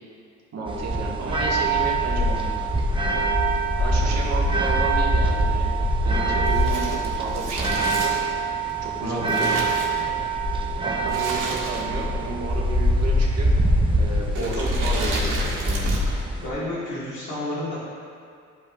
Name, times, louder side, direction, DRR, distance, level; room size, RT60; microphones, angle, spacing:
voice 1, 0.5-2.5 3.8-5.8 6.0-8.2 8.8-9.6 10.8-13.5 14.0-15.2 15.6-16.0, right 3 dB, 60° right, -3 dB, 1.6 m, -32 dB
sound 1, 0.7-16.5, right 1 dB, 15° right, 0.9 m, -23 dB
Crumpling crinkling, 6.4-10.4 11.1-12.1 12.4-12.5 13.3-13.6 14.3-16.2 16.5-16.6, right 3 dB, 90° right, 1.8 m, -33 dB
voice 2, 9.0-10.2 11.5-11.9 14.4-15.5 16.0-16.1 16.4-17.8, left 1 dB, 85° left, -9 dB, 1.8 m, -32 dB
13.5 x 5.2 x 2.4 m, 2.3 s
cardioid pair, 100°, 30 cm